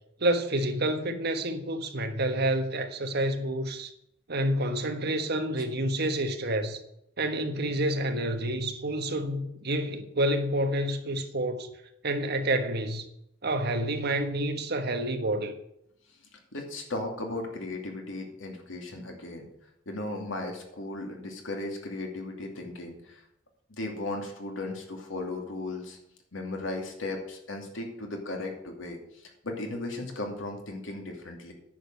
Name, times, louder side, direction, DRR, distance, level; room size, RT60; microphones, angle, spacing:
voice 1, 0.2-3.9 4.3-6.8 7.2-11.7 12.0-13.1 13.4-15.5, right 1 dB, 55° right, 1.4 m, -28 dB
voice 2, 16.5-19.5 19.9-23.2 23.7-26.0 26.3-31.5, left 2 dB, 85° left, 2.6 m, -36 dB
10.0 x 6.7 x 7.8 m
head